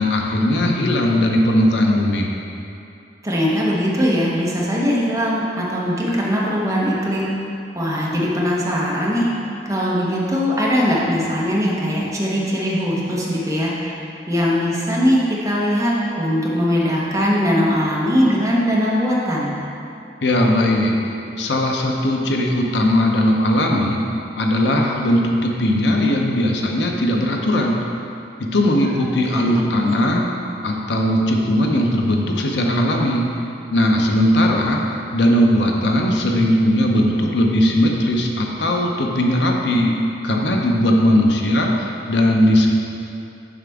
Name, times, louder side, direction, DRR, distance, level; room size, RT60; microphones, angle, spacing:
voice 1, 0.0-2.3 20.2-20.9 21.4-24.0 24.4-27.8 28.4-30.2 30.6-33.3 33.7-40.0 40.2-42.7, left 1 dB, 70° left, 1 dB, 0.7 m, -18 dB
voice 2, 3.2-7.3 7.7-9.3 9.6-13.7 14.3-19.5 29.2-29.5 29.8-29.9, equal, 15° right, -5 dB, 1.0 m, -20 dB
7.2 x 5.8 x 3.6 m, 2.7 s
head